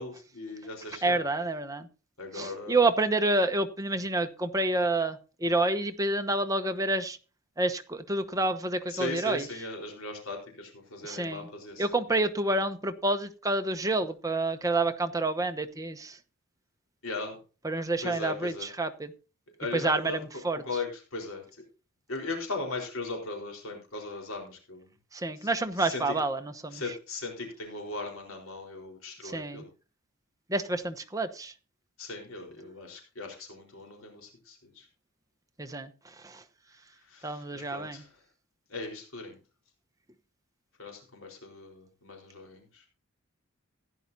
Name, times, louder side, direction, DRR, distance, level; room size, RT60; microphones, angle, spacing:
voice 1, 0.0-1.2 2.2-2.8 8.9-12.2 17.0-17.4 18.0-18.7 19.6-21.4 22.1-24.9 25.4-25.5 25.8-26.2 26.7-29.7 32.0-34.9 37.1-38.1 38.7-39.4 40.8-42.8, left 3 dB, 65° left, 4.2 m, -38 dB
voice 2, 1.0-1.9 2.3-7.2 7.6-9.5 11.0-11.5 11.8-16.2 17.6-19.1 19.7-20.6 25.1-27.0 29.2-29.6 30.5-31.5 35.6-36.4 37.2-38.0, right 2 dB, 15° right, 0.9 m, -29 dB
15.5 x 10.5 x 2.7 m
head